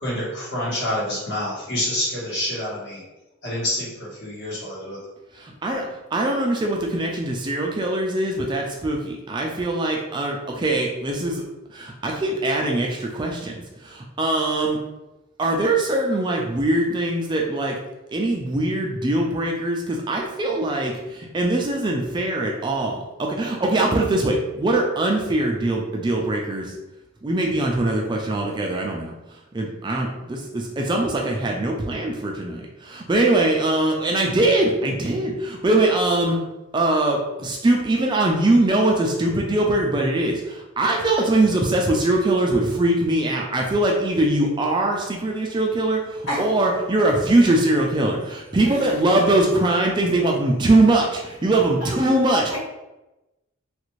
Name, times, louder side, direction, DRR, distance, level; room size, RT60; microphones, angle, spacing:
voice 1, 0.0-3.0 3.4-5.0, left 1 dB, 50° left, -6 dB, 1.2 m, -27 dB
voice 2, 5.3-11.4 11.7-14.8 15.4-17.8 18.1-26.7 27.2-29.1 29.5-36.4 36.7-52.6, right 2 dB, 20° right, 0 dB, 0.3 m, -22 dB
voice 3, 48.6-48.9 52.3-52.6, left 1 dB, 65° left, -6 dB, 1.4 m, -29 dB
3.2 x 2.5 x 3.1 m, 0.99 s
head